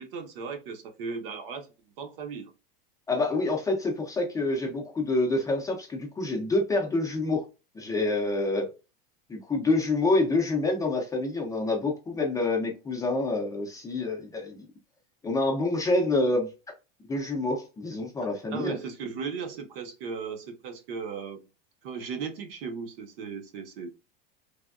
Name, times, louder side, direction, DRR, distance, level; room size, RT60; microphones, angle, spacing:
voice 1, 0.0-1.7 2.0-2.5 18.5-21.4 21.8-23.9, right 5 dB, 65° right, 0.9 m, -36 dB
voice 2, 3.1-7.5 7.7-8.7 9.3-14.7 15.2-16.5 17.1-18.8, left 2 dB, 10° left, 0.5 m, -27 dB
3.3 x 2.2 x 2.3 m
supercardioid pair, 145°, 30 cm